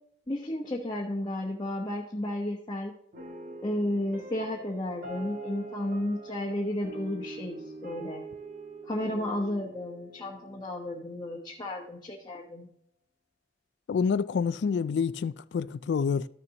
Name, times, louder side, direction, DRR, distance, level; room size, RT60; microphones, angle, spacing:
voice 1, 0.3-2.9 3.6-8.2 8.9-12.7, left 1 dB, 25° left, 1.1 m, -33 dB
sound 1, 3.1-11.7, right 2 dB, 50° right, 1.5 m, -44 dB
voice 2, 13.9-16.3, left 6 dB, 70° left, 0.3 m, -27 dB
13.0 x 6.7 x 2.9 m
head